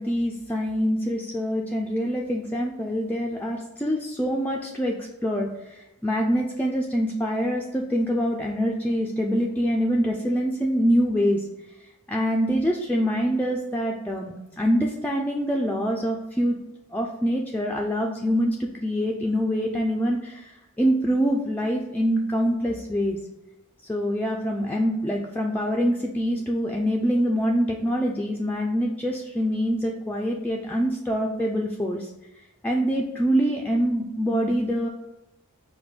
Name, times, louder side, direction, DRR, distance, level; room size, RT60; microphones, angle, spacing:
voice 1, 0.0-11.5 12.1-16.6 16.9-23.2 23.8-34.9, equal, 5° left, -1 dB, 0.3 m, -25 dB
5.1 x 2.1 x 4.8 m, 0.95 s
head